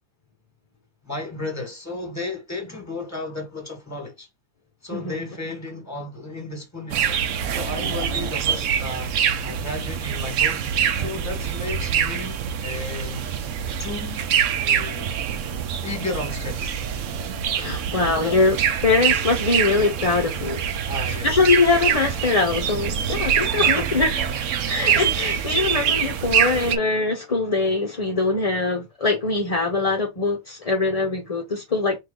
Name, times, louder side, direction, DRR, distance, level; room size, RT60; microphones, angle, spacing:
voice 1, 1.0-4.3 4.8-9.1 9.4-10.6 10.9-13.3 13.6-14.2 14.5-15.2 15.8-16.8 18.2-18.4 20.8-21.4 23.6-23.9 24.6-24.7, left 2 dB, 10° left, 1.5 m, -33 dB
voice 2, 4.9-5.2 17.3-18.6 18.8-20.7 21.2-24.1 24.6-32.0, left 3 dB, 35° left, 0.6 m, -22 dB
sound 1, 6.9-26.8, right 8 dB, 70° right, 0.9 m, -25 dB
4.6 x 2.9 x 3.8 m
omnidirectional pair, 1.5 m